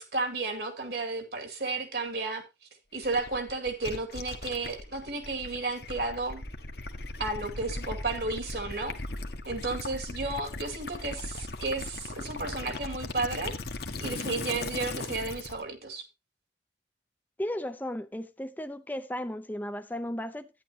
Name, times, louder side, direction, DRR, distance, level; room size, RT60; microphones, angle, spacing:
voice 1, 0.0-2.4 2.9-6.4 7.2-9.0 9.5-13.5 14.0-16.0, right 3 dB, 65° right, 2.2 m, -33 dB
Gurgling / Liquid, 3.0-15.6, left 2 dB, 60° left, 1.2 m, -38 dB
voice 2, 17.4-20.5, left 1 dB, 10° left, 0.5 m, -35 dB
11.0 x 9.8 x 2.8 m
head